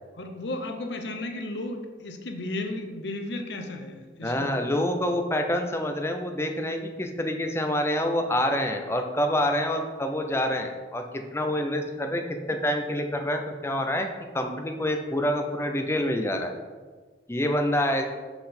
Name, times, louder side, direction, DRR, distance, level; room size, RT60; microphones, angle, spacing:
voice 1, 0.1-4.5, left 2 dB, 70° left, 5 dB, 0.8 m, -34 dB
voice 2, 4.2-14.1 14.3-16.5 17.3-18.0, left 1 dB, 15° left, 4 dB, 0.6 m, -27 dB
5.8 x 5.6 x 4.3 m, 1.4 s
head